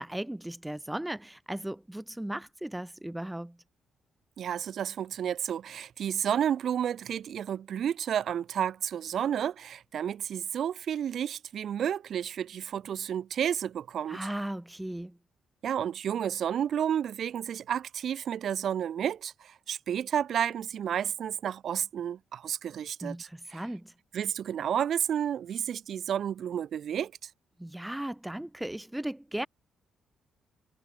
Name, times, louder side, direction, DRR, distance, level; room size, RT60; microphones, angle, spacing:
voice 1, 0.0-3.6 14.1-15.2 23.0-23.9 27.6-29.5, right 1 dB, 5° right, 4.5 m, -36 dB
voice 2, 4.4-14.2 15.6-23.1 23.5-23.6 24.1-27.1, right 9 dB, 60° right, 1.3 m, -31 dB
cardioid pair, 90°, 0 cm